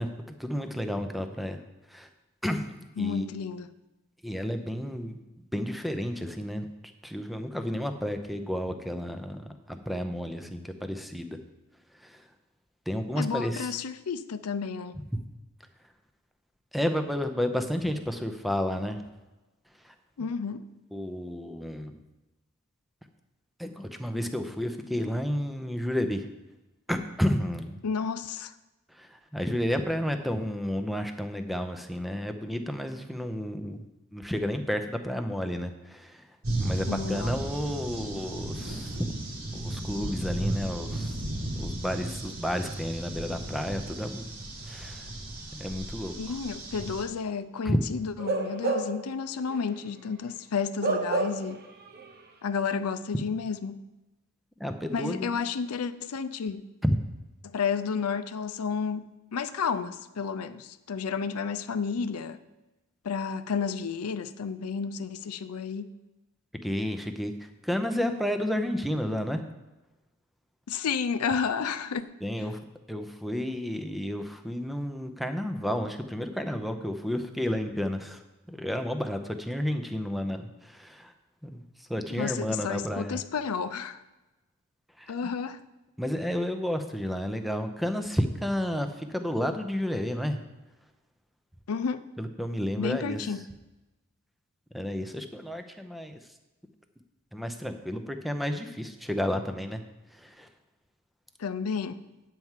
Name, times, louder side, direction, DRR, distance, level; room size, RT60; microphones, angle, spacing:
voice 1, 0.0-1.6 1.9-2.1 2.4-3.3 4.2-5.2 5.5-6.7 7.0-11.4 12.0-12.2 12.9-13.7 16.7-19.0 19.8-19.9 20.9-22.0 23.6-26.3 26.9-27.8 28.9-33.9 34.1-36.3 36.5-39.1 39.5-41.2 41.6-44.3 44.6-45.1 45.5-46.3 47.6-47.8 54.6-55.4 56.8-57.0 66.6-69.4 72.2-72.6 72.9-78.2 78.5-81.1 81.4-81.6 81.9-83.2 85.0-85.3 86.0-90.4 92.2-93.3 94.7-96.2 97.3-99.8 100.1-100.5, equal, ahead, 0.6 m, -31 dB
voice 2, 3.0-3.7 13.2-15.0 20.2-20.7 27.8-28.5 36.9-37.3 46.2-51.6 52.4-53.9 54.9-56.7 57.4-62.4 63.0-66.0 70.7-72.1 82.1-84.0 85.1-85.6 91.7-92.0 92.8-93.5 101.4-102.0, left 6 dB, 85° left, 0.5 m, -31 dB
sound 1, 36.4-47.0, right 1 dB, 70° right, 2.1 m, -35 dB
Bark / Livestock farm animals working animals, 48.2-49.1 49.5-49.7 50.8-51.6 51.9-52.1, right 3 dB, 45° right, 0.9 m, -29 dB
9.4 x 4.6 x 7.3 m
head